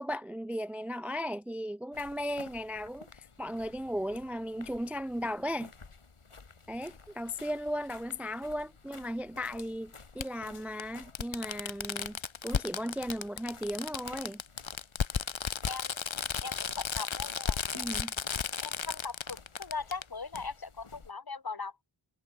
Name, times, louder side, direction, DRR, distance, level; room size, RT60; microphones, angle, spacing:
voice 1, 0.0-5.7 6.7-14.4 17.7-18.1, equal, 5° right, 0.4 m, -36 dB
sound 1, 1.9-21.1, left 4 dB, 90° left, 4.9 m, -54 dB
Fireworks, 6.9-7.0 8.5-8.6 10.2-10.3 10.8-10.9 11.2-20.0 20.4-20.5, left 7 dB, 70° left, 1.1 m, -34 dB
voice 2, 15.6-16.0 16.4-17.9 18.6-21.7, left 4 dB, 45° left, 1.6 m, -40 dB
wide cardioid pair, 60°, 49 cm